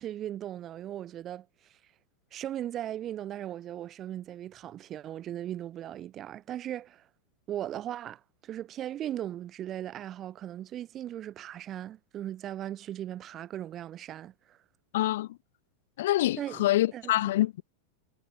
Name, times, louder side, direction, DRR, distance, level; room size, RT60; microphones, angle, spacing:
voice 1, 0.0-1.5 2.3-7.1 7.5-14.6 16.4-16.6 16.9-17.1, right 11 dB, 30° right, 7.1 m, -38 dB
voice 2, 14.9-15.4 16.0-17.6, left 15 dB, 55° left, 3.1 m, -26 dB
figure-of-eight pair, 90°, 0 cm